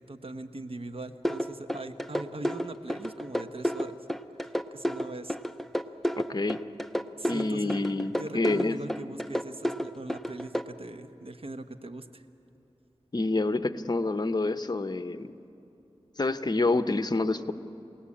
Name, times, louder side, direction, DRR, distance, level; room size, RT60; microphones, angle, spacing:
voice 1, 0.0-4.0 4.4-5.4 7.2-7.8 8.2-12.2, right 2 dB, 60° right, 9 dB, 1.1 m, -40 dB
sound 1, 1.3-10.6, equal, ahead, 0.7 m, -31 dB
voice 2, 6.1-6.6 7.3-8.8 13.1-15.3 16.2-17.5, left 2 dB, 40° left, 10 dB, 0.8 m, -28 dB
29.0 x 17.5 x 8.6 m, 2.9 s
wide cardioid pair, 60°, 11 cm